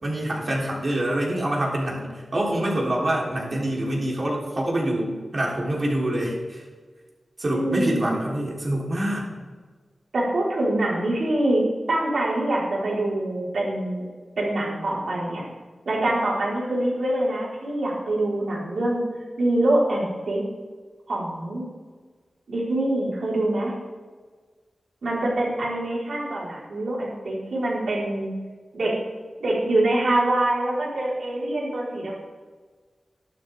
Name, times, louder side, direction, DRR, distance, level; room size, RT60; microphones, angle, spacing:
voice 1, 0.0-6.6 7.4-9.3, right 1 dB, 45° right, -4 dB, 3.7 m, -26 dB
voice 2, 7.5-8.1 10.1-11.6 11.9-14.0 14.4-15.4 15.9-19.0 19.4-20.4 21.1-21.7 22.5-23.7 25.0-28.3 28.7-28.9 29.4-32.1, right 1 dB, 80° right, -5 dB, 4.4 m, -24 dB
14.0 x 12.0 x 3.6 m, 1.4 s
wide cardioid pair, 95°, 0 cm